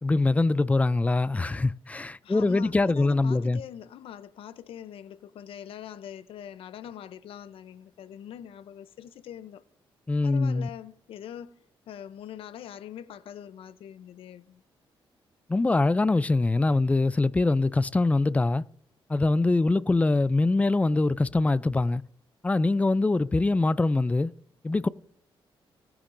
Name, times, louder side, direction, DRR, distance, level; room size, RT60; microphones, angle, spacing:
voice 1, 0.0-3.6 10.1-10.7 15.5-18.6 19.1-22.0 22.4-24.3 24.6-24.9, left 2 dB, 15° left, 0.3 m, -23 dB
voice 2, 2.2-9.6 10.2-11.5 11.9-14.6, left 10 dB, 85° left, 0.6 m, -43 dB
19.0 x 9.8 x 2.6 m
cardioid pair, 120°, 9 cm